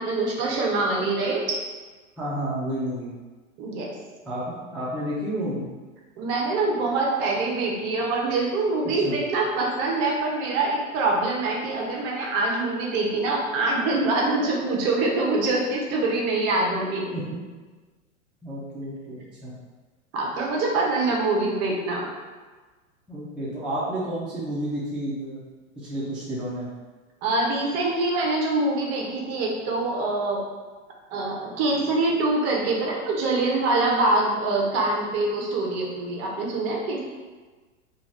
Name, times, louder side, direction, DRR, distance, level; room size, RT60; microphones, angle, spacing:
voice 1, 0.0-1.6 3.6-4.0 6.2-17.1 20.1-22.1 27.2-30.4 31.1-37.0, right 2 dB, 40° right, -1 dB, 0.7 m, -24 dB
voice 2, 2.2-3.1 4.3-5.6 9.0-9.1 17.1-17.4 18.4-19.5 23.1-25.4 25.8-26.7, right 1 dB, ahead, -9 dB, 0.4 m, -31 dB
2.5 x 2.3 x 3.2 m, 1.3 s
hypercardioid pair, 110°, 40 cm